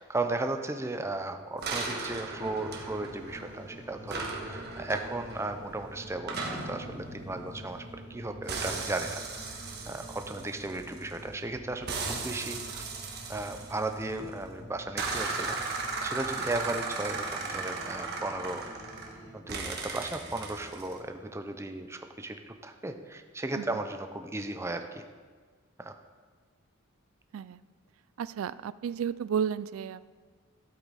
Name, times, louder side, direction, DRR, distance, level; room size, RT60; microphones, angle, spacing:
voice 1, 0.0-9.2 9.9-12.8 13.3-18.7 19.3-25.0 25.8-25.9, right 2 dB, 15° right, 7 dB, 0.5 m, -35 dB
sound 1, 1.6-3.7 4.1-8.1 8.5-11.2 11.9-14.3 15.0-19.2 19.5-21.0, right 4 dB, 50° right, 1.4 m, -37 dB
sound 2, 2.3-19.3, equal, 15° left, 3.2 m, -48 dB
voice 2, 28.2-30.0, right 7 dB, 75° right, 17 dB, 0.3 m, -32 dB
12.5 x 8.2 x 4.1 m, 1.5 s
head